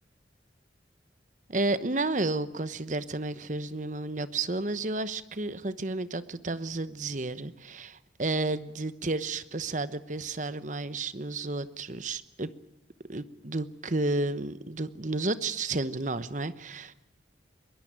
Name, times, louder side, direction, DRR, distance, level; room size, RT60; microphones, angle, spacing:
voice 1, 1.5-12.5 13.1-16.9, right 2 dB, 40° right, 14 dB, 1.0 m, -32 dB
22.5 x 19.5 x 8.9 m, 0.89 s
head